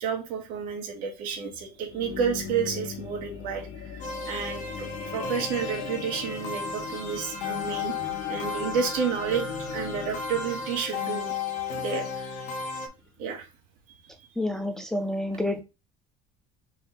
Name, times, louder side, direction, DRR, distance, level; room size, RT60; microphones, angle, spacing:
voice 1, 0.0-7.9 8.3-9.4 9.7-11.3 11.7-12.3 13.2-13.5, right 6 dB, 60° right, 1.8 m, -31 dB
sound 1, 1.6-12.1 12.7-12.8, left 6 dB, 85° left, 1.4 m, -39 dB
sound 2, 4.0-12.9, left 5 dB, 50° left, 1.1 m, -34 dB
voice 2, 14.4-15.6, left 1 dB, 5° left, 0.4 m, -28 dB
4.0 x 3.4 x 3.8 m
cardioid pair, 150°, 16 cm